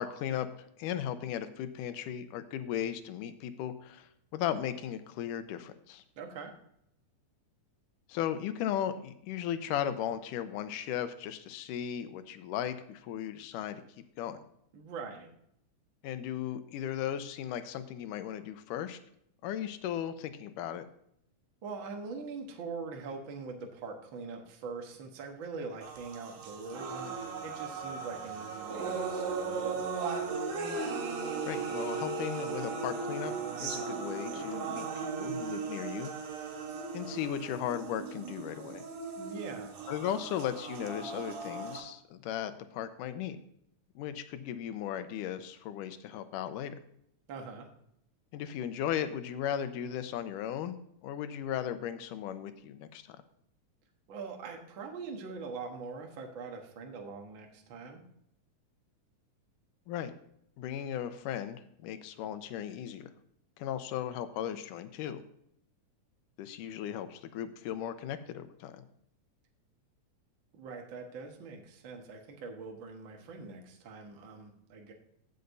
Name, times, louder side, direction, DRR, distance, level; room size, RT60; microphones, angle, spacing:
voice 1, 0.0-6.0 8.1-13.8 14.2-14.4 16.0-19.0 19.4-20.8 31.4-33.3 33.6-36.4 36.9-38.9 39.9-43.4 44.0-46.8 48.3-50.8 51.0-53.2 59.9-60.1 60.6-63.1 63.6-65.2 66.4-68.8, left 10 dB, 85° left, 10 dB, 2.2 m, -36 dB
voice 2, 6.2-6.5 14.7-15.3 21.6-29.8 39.2-39.7 47.3-47.7 54.1-58.0 70.5-74.9, right 4 dB, 55° right, 2 dB, 1.4 m, -43 dB
sound 1, 25.8-41.8, right 5 dB, 80° right, 3.2 m, -37 dB
15.5 x 6.5 x 2.6 m, 0.71 s
omnidirectional pair, 3.6 m